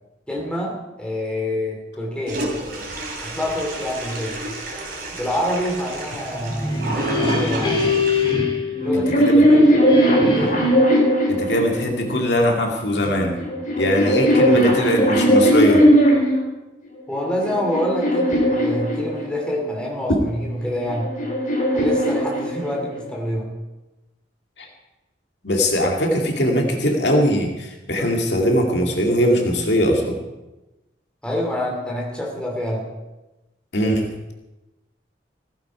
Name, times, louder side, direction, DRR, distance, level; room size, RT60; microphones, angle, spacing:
voice 1, 0.3-2.5 3.2-4.5 5.1-7.9 8.8-9.8 10.3-10.6 14.2-15.0 17.1-21.1 21.7-23.5 31.2-32.9, left 1 dB, 5° left, -2 dB, 2.9 m, -27 dB
Toilet flush, 2.3-8.3, right 1 dB, 50° right, 3.5 m, -31 dB
sound 1, 6.3-9.4 9.9-10.8, left 3 dB, 25° left, 2.8 m, -23 dB
sound 2, 8.7-12.1 13.1-16.5 17.1-19.5 20.6-23.0, equal, 40° left, 4.4 m, -18 dB
voice 2, 8.9-9.4 11.3-13.4 13.8-15.9 24.6-24.7 25.4-30.2 33.7-34.1, equal, 65° left, 1 dB, 2.2 m, -20 dB
15.5 x 14.5 x 4.7 m, 1.0 s
head